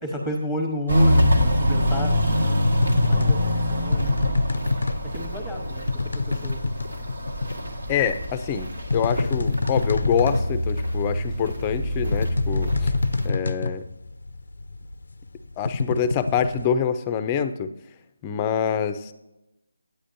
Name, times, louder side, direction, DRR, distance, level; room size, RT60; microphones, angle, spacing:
voice 1, 0.0-4.2 5.1-5.9 6.4-6.6, equal, 5° right, 2 dB, 1.1 m, -32 dB
Walk footsteps, 0.9-13.3, equal, 85° right, 1.7 m, -25 dB
sound 1, 2.6-16.7, left 3 dB, 75° left, 0.4 m, -27 dB
voice 2, 7.9-12.9 13.2-13.8 15.6-17.7 18.2-19.1, left 8 dB, 20° left, 11 dB, 0.5 m, -26 dB
9.7 x 8.5 x 2.6 m, 0.92 s
figure-of-eight pair, 165°, 0 cm